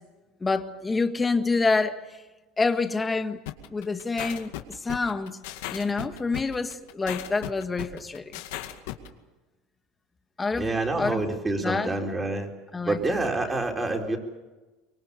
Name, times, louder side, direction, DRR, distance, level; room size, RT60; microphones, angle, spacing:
voice 1, 0.4-1.9 2.6-3.4 3.7-4.5 4.8-5.4 5.7-8.3 10.4-10.7 11.0-11.2 11.6-11.9 12.7-13.0, left 4 dB, 15° left, 1.6 m, -27 dB
sound 1, 3.5-9.1, left 13 dB, 80° left, 2.2 m, -36 dB
voice 2, 10.6-12.5 12.9-14.2, right 2 dB, 15° right, 4.0 m, -27 dB
25.0 x 23.5 x 6.9 m
supercardioid pair, 130°, 0 cm